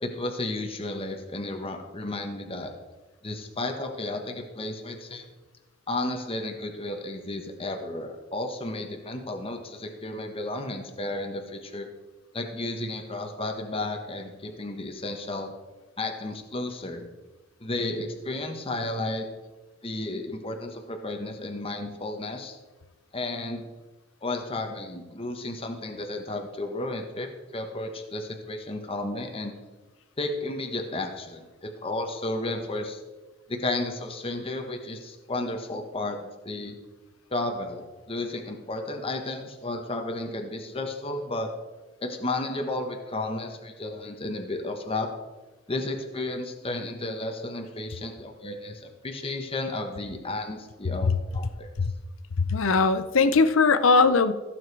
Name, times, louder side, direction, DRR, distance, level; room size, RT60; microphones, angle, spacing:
voice 1, 0.0-2.7 3.2-5.2 5.9-11.9 12.3-15.5 16.0-17.0 17.6-19.3 19.8-22.6 23.1-23.7 24.2-29.5 30.2-33.0 33.5-36.7 37.3-41.5 42.0-45.1 45.7-51.7, left 2 dB, 30° left, 4 dB, 1.2 m, -33 dB
voice 2, 52.5-54.3, left 4 dB, 80° left, 13 dB, 0.7 m, -20 dB
15.0 x 7.3 x 4.8 m, 1.2 s
head